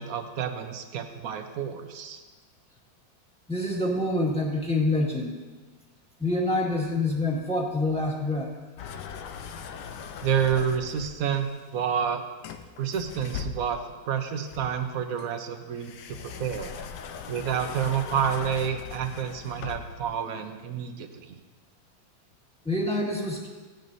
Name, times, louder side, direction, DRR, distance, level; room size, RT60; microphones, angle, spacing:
voice 1, 0.0-2.2 10.2-12.2 12.8-13.8 14.0-16.7 17.3-21.3, right 8 dB, 55° right, 6 dB, 1.2 m, -29 dB
voice 2, 3.5-5.3 6.2-8.5 22.6-23.5, left 2 dB, 5° left, -3 dB, 1.6 m, -26 dB
sound 1, 8.8-11.3 12.4-14.0 14.5-20.1, left 7 dB, 75° left, 1.3 m, -40 dB
17.5 x 10.5 x 2.7 m, 1.3 s
omnidirectional pair, 2.0 m